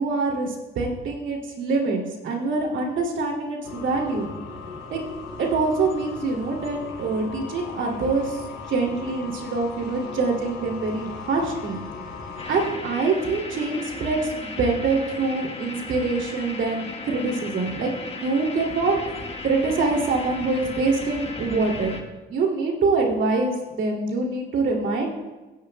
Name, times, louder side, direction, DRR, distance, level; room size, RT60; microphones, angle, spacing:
voice 1, 0.0-4.3 4.9-5.0 5.4-8.4 8.7-11.8 12.5-22.0 22.3-25.1, right 3 dB, 70° right, 0 dB, 2.7 m, -25 dB
sound 1, 3.6-12.7, left 4 dB, 75° left, 2.8 m, -38 dB
sound 2, 12.4-22.0, left 3 dB, 30° left, 1.2 m, -36 dB
16.5 x 11.0 x 2.3 m, 1.1 s
cardioid pair, 90°, 20 cm